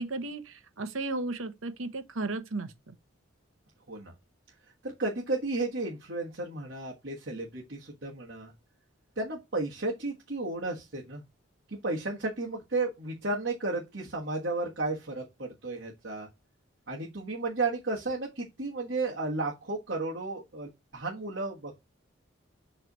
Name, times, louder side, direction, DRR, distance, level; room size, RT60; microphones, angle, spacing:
voice 1, 0.0-2.9, right 2 dB, 90° right, 1.0 m, -35 dB
voice 2, 4.8-8.5 9.2-11.2 11.7-16.3 16.9-21.8, right 2 dB, 60° right, 1.4 m, -33 dB
7.7 x 3.3 x 4.1 m
head